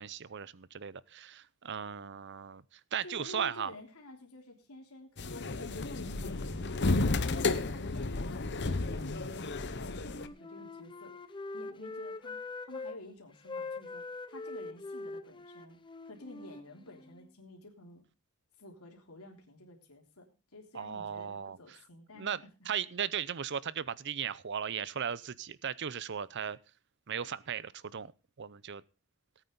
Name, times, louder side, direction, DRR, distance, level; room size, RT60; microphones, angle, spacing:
voice 1, 0.0-3.7 20.7-21.8 22.1-22.4 22.7-26.6 27.1-28.1 28.4-28.8, right 8 dB, 50° right, 19 dB, 0.6 m, -37 dB
voice 2, 3.0-15.8 16.0-18.0 18.6-22.5, left 2 dB, 75° left, 1 dB, 3.4 m, -52 dB
sound 1, 5.2-10.3, left 3 dB, 50° left, 1.0 m, -32 dB
Wind instrument woodwind instrument, 10.0-13.0 13.5-17.3, left 3 dB, 20° left, 0.7 m, -43 dB
18.5 x 9.1 x 3.9 m, 0.30 s
head